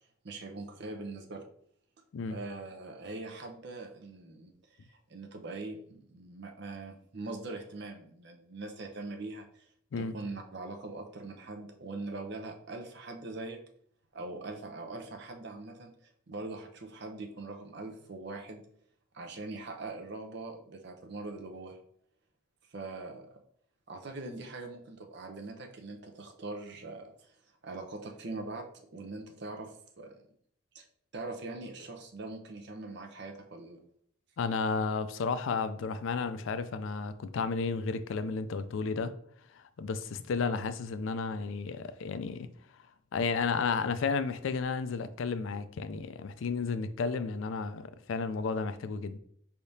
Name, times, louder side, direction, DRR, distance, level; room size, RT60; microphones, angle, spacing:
voice 1, 0.2-1.4 2.3-9.7 10.0-13.6 14.1-18.6 19.1-21.8 22.7-23.4 23.9-27.3 27.6-30.3 30.7-30.9 31.1-33.8, right 2 dB, 55° right, 0.7 m, -42 dB
voice 2, 34.4-39.1 39.5-42.5 43.1-49.2, left 4 dB, 75° left, 0.4 m, -32 dB
4.7 x 3.5 x 2.7 m
head